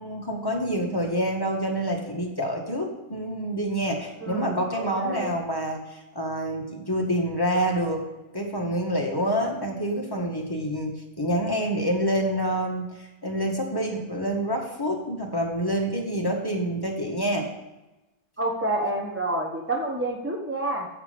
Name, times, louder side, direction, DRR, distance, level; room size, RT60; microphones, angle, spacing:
voice 1, 0.0-8.0 8.3-17.5, equal, 15° left, -1 dB, 1.7 m, -27 dB
voice 2, 4.2-5.3 18.4-20.9, right 2 dB, 10° right, -2 dB, 0.8 m, -28 dB
10.0 x 7.3 x 5.3 m, 1.0 s
omnidirectional pair, 1.9 m